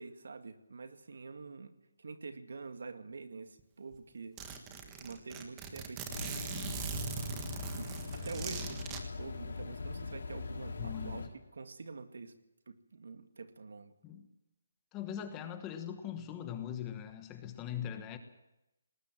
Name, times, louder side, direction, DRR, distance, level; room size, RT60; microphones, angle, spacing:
voice 1, 0.0-4.4 4.9-6.5 7.7-12.3 12.7-13.9, right 4 dB, 70° right, 8 dB, 2.0 m, -47 dB
Zipper (clothing), 3.6-3.7 3.9-4.0 4.4-9.0, right 6 dB, 15° right, 1.5 m, -41 dB
sound 1, 6.1-11.3, left 4 dB, 70° left, 3.7 m, -41 dB
voice 2, 10.8-11.3 14.0-14.3 14.9-18.2, left 9 dB, 15° left, 8 dB, 1.2 m, -41 dB
19.5 x 19.0 x 7.4 m, 0.92 s
hypercardioid pair, 175°, 0 cm